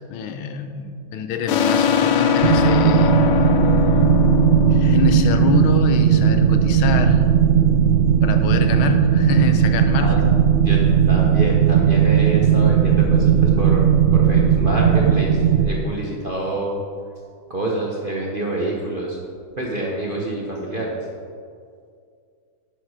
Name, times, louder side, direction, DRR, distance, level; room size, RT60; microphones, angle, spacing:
voice 1, 0.1-3.1 4.7-7.3 8.2-10.2, left 5 dB, 85° left, 7 dB, 1.6 m, -25 dB
sound 1, 1.5-6.8, left 8 dB, 70° left, 1.3 m, -21 dB
sound 2, 2.4-15.6, right 8 dB, 90° right, 0.6 m, -16 dB
voice 2, 10.6-16.8 17.5-19.2 19.6-21.0, right 2 dB, 40° right, -3 dB, 0.8 m, -27 dB
11.0 x 6.8 x 4.9 m, 2.3 s
omnidirectional pair, 2.2 m